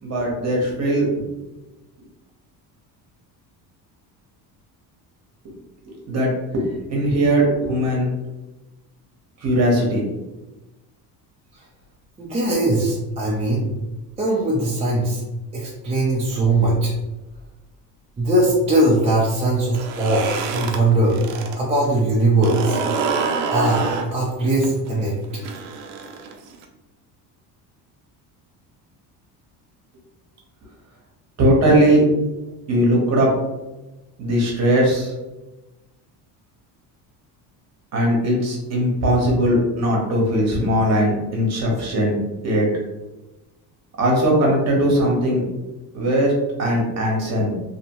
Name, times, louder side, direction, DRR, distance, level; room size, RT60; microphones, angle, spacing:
voice 1, 0.0-1.2 5.9-8.1 9.4-10.0 31.4-32.0 32.7-33.3 34.2-35.1 37.9-42.2 42.4-42.7 44.0-45.4 45.9-46.3 46.6-47.5, right 1 dB, 40° right, -2 dB, 1.0 m, -19 dB
voice 2, 12.2-13.7 14.2-15.2 15.5-16.9 18.2-21.2 21.6-22.8 23.5-23.8 24.1-25.1, right 2 dB, 15° right, -5 dB, 0.5 m, -20 dB
sound 1, 19.7-21.6 21.9-26.6, right 5 dB, 80° right, 0.6 m, -27 dB
2.8 x 2.1 x 2.9 m, 1.0 s
cardioid pair, 120°, 42 cm